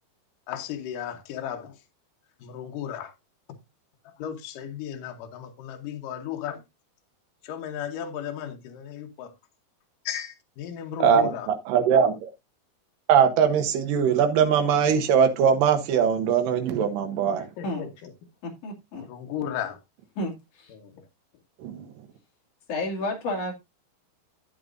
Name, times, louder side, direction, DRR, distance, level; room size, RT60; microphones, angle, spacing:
voice 1, 0.5-1.8 2.4-3.1 4.0-6.6 7.4-9.3 10.1-11.5 17.4-18.1 18.9-19.8 20.7-21.1, left 9 dB, 70° left, 2.5 m, -35 dB
voice 2, 11.0-12.3 13.1-17.5 21.6-21.9, right 7 dB, 70° right, 2.7 m, -21 dB
voice 3, 18.4-19.1 20.2-20.7 22.7-23.5, left 1 dB, 45° left, 2.8 m, -31 dB
11.5 x 8.7 x 2.5 m
omnidirectional pair, 4.4 m